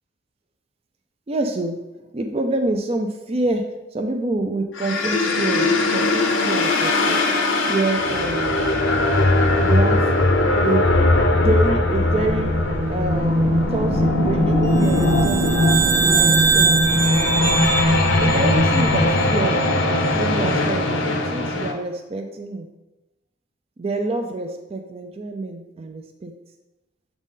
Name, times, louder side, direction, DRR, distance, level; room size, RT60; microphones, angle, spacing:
voice 1, 1.3-1.8 2.1-3.6 3.9-7.2 7.6-8.6 9.6-10.1 10.6-10.9 11.3-12.6 12.9-17.0 17.3-17.6 18.2-19.7 20.1-22.7 23.8-26.3, right 2 dB, 30° right, 4 dB, 0.4 m, -27 dB
sound 1, 4.7-21.7, left 2 dB, 75° left, 0.7 m, -21 dB
sound 2, 11.8-19.4, left 1 dB, 10° right, 0.8 m, -22 dB
sound 3, 14.8-19.3, right 5 dB, 60° right, 1.0 m, -22 dB
7.2 x 4.0 x 3.7 m, 1.0 s
head